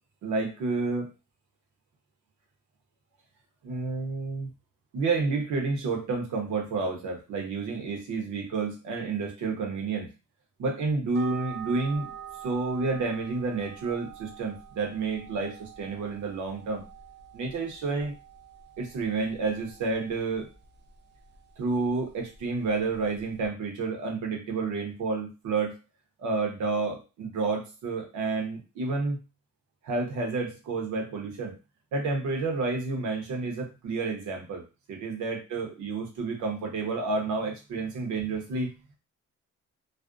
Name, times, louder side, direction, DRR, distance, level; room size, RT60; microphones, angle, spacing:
voice 1, 0.2-1.1 3.6-4.5 4.9-10.1 10.6-12.1 12.4-16.8 17.3-18.1 18.8-20.5 21.6-25.8 26.2-29.2 29.8-31.6 31.9-38.7, right 3 dB, 75° right, 2 dB, 0.8 m, -30 dB
sound 1, 11.1-23.5, right 8 dB, 35° right, 0.5 m, -46 dB
2.4 x 2.1 x 2.4 m, 0.30 s
cardioid pair, 90°, 30 cm